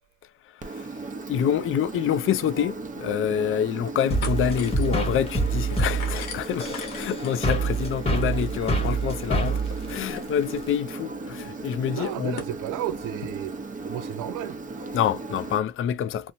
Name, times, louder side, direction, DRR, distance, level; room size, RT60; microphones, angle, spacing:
Engine, 0.6-15.6, right 3 dB, 25° right, 0.7 m, -37 dB
voice 1, 1.3-12.4 14.9-16.3, left 9 dB, 45° left, 0.4 m, -27 dB
sound 1, 2.6-2.7 3.2-3.6 3.9-12.6, left 6 dB, 85° left, 1.0 m, -44 dB
sound 2, 4.1-10.8, right 3 dB, 20° left, 1.0 m, -27 dB
voice 2, 11.9-13.5 13.8-14.9, right 13 dB, 85° right, 0.5 m, -33 dB
2.9 x 2.0 x 2.6 m
cardioid pair, 90°, 30 cm